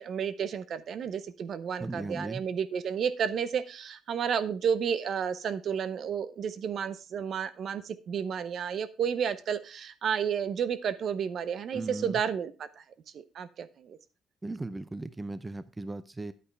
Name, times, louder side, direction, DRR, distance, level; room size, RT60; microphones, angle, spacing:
voice 1, 0.0-12.8 13.1-14.0, right 7 dB, 55° right, 14 dB, 0.7 m, -31 dB
voice 2, 1.8-2.4 11.7-12.2 14.4-16.3, right 2 dB, 15° right, 14 dB, 0.5 m, -37 dB
10.0 x 8.6 x 3.3 m, 0.33 s
cardioid pair, 105°, 0 cm